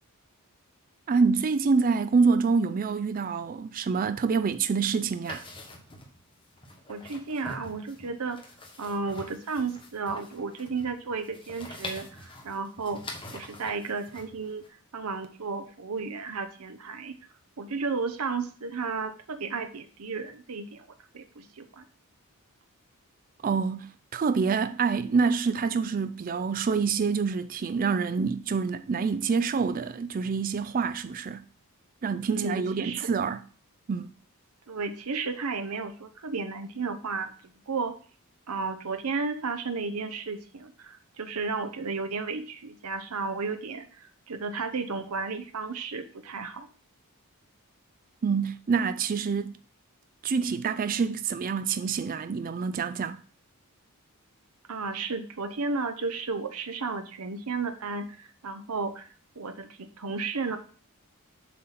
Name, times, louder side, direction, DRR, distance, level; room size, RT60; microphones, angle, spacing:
voice 1, 1.1-5.4 23.4-31.4 32.0-33.4 33.9-34.1 48.2-49.6 50.2-53.2, right 5 dB, 40° right, 0.3 m, -26 dB
sound 1, 5.2-14.7, left 2 dB, 20° left, 1.3 m, -45 dB
voice 2, 6.9-8.4 8.8-13.0 13.3-14.6 14.9-17.2 17.6-20.9 21.1-21.8 32.3-33.1 34.7-37.3 37.7-38.0 38.5-46.7 54.7-60.6, right 4 dB, 85° right, 0.8 m, -33 dB
7.5 x 4.1 x 5.8 m
head